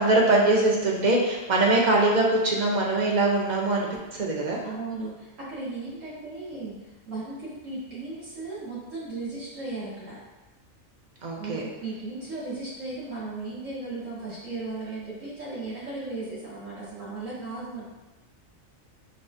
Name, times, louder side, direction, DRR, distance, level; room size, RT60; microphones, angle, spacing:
voice 1, 0.0-4.6 11.2-11.6, right 2 dB, 55° right, -2 dB, 0.5 m, -22 dB
voice 2, 4.6-6.7 7.1-10.2 11.4-17.8, right 3 dB, 75° right, -9 dB, 2.0 m, -36 dB
5.4 x 2.3 x 2.6 m, 1.0 s
omnidirectional pair, 1.4 m